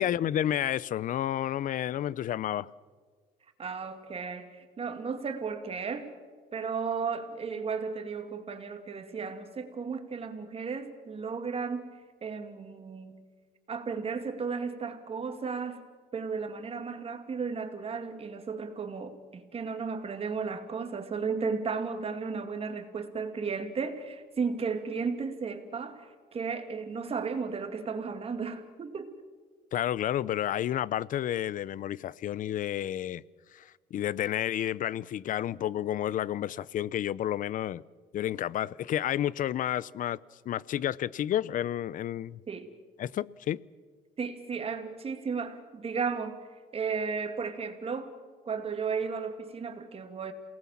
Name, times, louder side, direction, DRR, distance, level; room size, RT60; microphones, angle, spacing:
voice 1, 0.0-2.7 29.7-33.2 33.5-37.8 38.1-40.2 40.4-42.4 43.0-43.6, left 11 dB, 50° left, 0.6 m, -30 dB
voice 2, 3.6-6.1 6.5-11.9 12.2-13.2 13.7-29.1 42.5-42.7 44.2-46.5 46.7-48.1 48.4-50.3, right 5 dB, 35° right, 2.4 m, -34 dB
28.0 x 19.0 x 7.4 m
cardioid pair, 110°, 17 cm